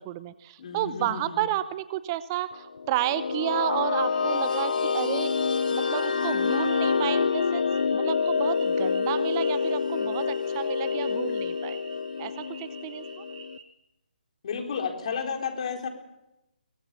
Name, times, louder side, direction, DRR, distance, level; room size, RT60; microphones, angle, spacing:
voice 1, 0.0-5.3 5.7-11.8 12.2-13.2, right 13 dB, 25° right, 15 dB, 0.8 m, -32 dB
voice 2, 0.6-1.5 14.4-15.9, left 6 dB, 45° left, 3 dB, 4.6 m, -32 dB
sound 1, 2.7-13.6, left 5 dB, 60° left, 0.9 m, -27 dB
sound 2, 4.0-13.6, right 5 dB, 40° right, 4.4 m, -49 dB
23.5 x 19.0 x 7.2 m, 0.92 s
figure-of-eight pair, 145°, 5 cm